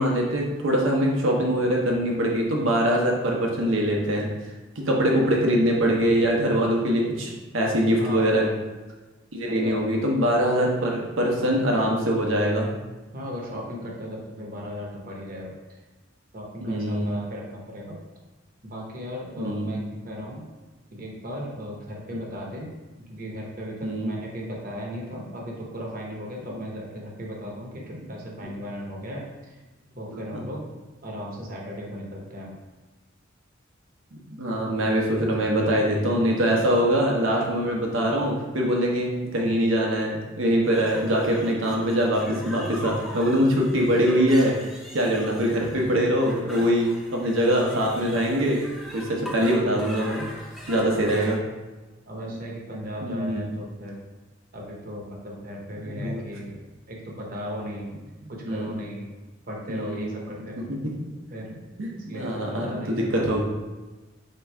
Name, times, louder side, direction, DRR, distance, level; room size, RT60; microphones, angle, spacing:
voice 1, 0.0-4.3 4.8-8.5 9.3-12.7 16.6-17.1 19.4-19.7 23.8-24.1 30.1-30.4 34.1-48.6 48.9-50.3 50.7-51.4 53.0-53.4 55.9-56.2 58.5-58.7 59.7-60.0 61.8-63.4, equal, 85° right, -1 dB, 0.9 m, -23 dB
voice 2, 8.0-8.5 9.5-9.9 13.1-15.8 16.3-18.0 18.6-20.4 20.9-22.7 23.0-29.6 30.0-32.6 50.9-51.3 52.1-54.0 54.5-56.6 56.9-57.9 58.3-59.1 59.5-60.7 61.3-61.6 62.1-63.3, equal, 45° right, -2 dB, 0.8 m, -36 dB
sound 1, 40.6-51.4, left 1 dB, ahead, 0.5 m, -41 dB
3.5 x 3.0 x 4.4 m, 1.2 s
head